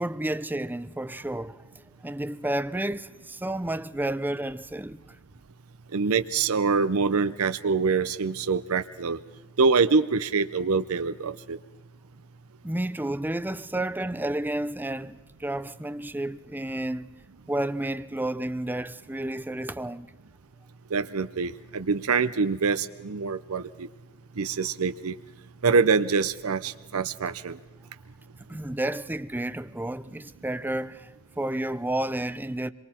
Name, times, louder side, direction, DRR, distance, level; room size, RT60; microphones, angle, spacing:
voice 1, 0.0-1.6 2.0-5.0 12.6-17.1 17.5-20.1 28.5-32.7, right 1 dB, 10° right, 0.5 m, -31 dB
voice 2, 5.9-9.2 9.6-11.6 20.9-23.9 24.4-25.1 25.6-27.6, right 4 dB, 85° right, 0.7 m, -25 dB
26.5 x 23.0 x 4.3 m
head